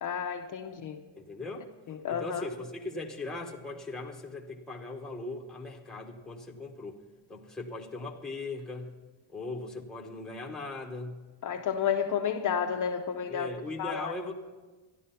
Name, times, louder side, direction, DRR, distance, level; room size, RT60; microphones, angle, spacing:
voice 1, 0.0-1.0 1.9-2.5 11.4-13.5 13.8-14.3, left 8 dB, 40° left, 3 dB, 0.7 m, -31 dB
voice 2, 1.2-1.7 2.1-7.0 7.3-8.9 9.3-11.1 13.3-14.3, left 2 dB, ahead, 0 dB, 1.0 m, -39 dB
13.0 x 11.5 x 5.6 m, 1.3 s
cardioid pair, 165°, 50 cm